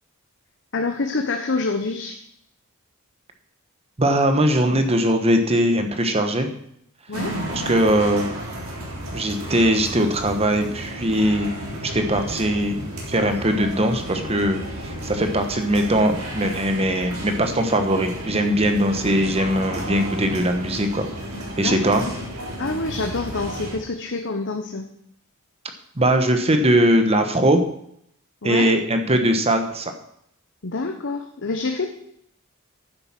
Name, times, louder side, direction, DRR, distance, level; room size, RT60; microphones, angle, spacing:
voice 1, 0.7-2.2 7.1-7.3 21.6-22.0 22.6-24.8 28.4-28.7 30.6-31.9, left 3 dB, 60° left, 5 dB, 0.9 m, -26 dB
voice 2, 4.0-6.5 7.5-8.3 9.1-11.5 11.8-14.6 15.0-21.1 21.6-22.0 26.0-27.6 28.4-29.9, right 1 dB, 30° right, 6 dB, 1.1 m, -20 dB
sound 1, 7.1-23.8, equal, 85° right, 3.5 m, -33 dB
10.0 x 7.9 x 5.9 m, 0.71 s
head